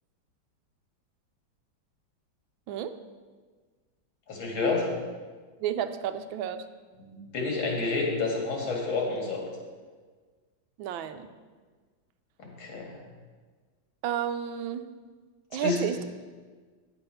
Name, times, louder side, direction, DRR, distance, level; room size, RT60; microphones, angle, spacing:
voice 1, 4.3-4.9 7.0-9.4 12.4-13.0 15.6-15.8, left 3 dB, 90° left, -1 dB, 2.7 m, -29 dB
voice 2, 5.6-6.6 10.8-11.3 14.0-14.9 15.5-16.0, right 9 dB, 80° right, 10 dB, 1.4 m, -31 dB
9.9 x 6.9 x 5.6 m, 1.5 s
omnidirectional pair, 2.2 m